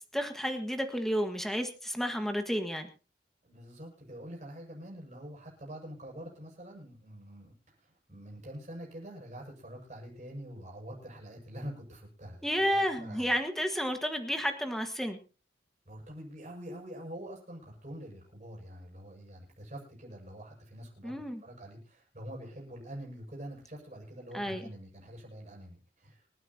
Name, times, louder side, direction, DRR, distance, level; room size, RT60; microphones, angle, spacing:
voice 1, 0.1-2.9 12.4-15.2 21.0-21.4 24.3-24.7, equal, ahead, 6 dB, 1.5 m, -31 dB
voice 2, 3.4-13.3 15.9-26.3, equal, 40° right, -2 dB, 6.9 m, -46 dB
26.0 x 9.7 x 2.9 m, 0.34 s
head